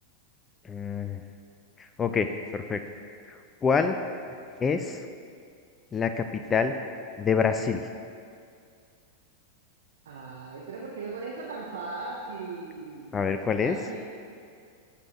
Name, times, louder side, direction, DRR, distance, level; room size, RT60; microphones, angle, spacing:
voice 1, 0.6-1.2 1.8-2.8 3.3-4.0 4.6-5.1 5.9-6.7 7.2-7.8 13.1-13.8, left 6 dB, 20° left, 7 dB, 0.4 m, -27 dB
voice 2, 10.1-13.2 13.6-14.0, right 3 dB, 65° right, -2 dB, 0.8 m, -38 dB
11.5 x 7.3 x 2.9 m, 2.3 s
figure-of-eight pair, 90°, 0 cm